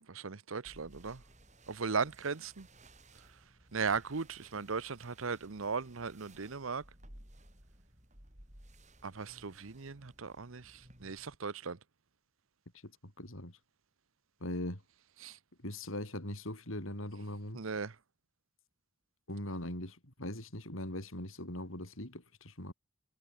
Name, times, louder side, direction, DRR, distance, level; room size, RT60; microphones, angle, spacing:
voice 1, 0.1-1.2 1.7-2.7 3.7-6.8 9.0-11.8 15.2-15.4 17.5-17.9, right 5 dB, 75° right, 0.9 m, -37 dB
sound 1, 0.6-11.3, right 1 dB, 35° right, 6.8 m, -59 dB
voice 2, 13.2-13.6 14.4-14.8 15.6-17.6 19.3-22.7, left 1 dB, 75° left, 5.8 m, -40 dB
head